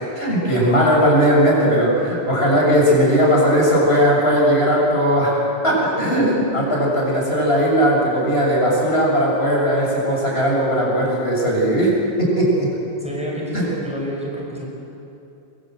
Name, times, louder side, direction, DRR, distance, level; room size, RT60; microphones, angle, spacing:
voice 1, 0.0-11.9 12.2-12.7 13.5-13.7, equal, 70° left, -3 dB, 7.5 m, -18 dB
voice 2, 13.0-14.7, equal, 5° right, -2 dB, 5.7 m, -29 dB
27.5 x 22.5 x 7.9 m, 2.8 s
omnidirectional pair, 1.1 m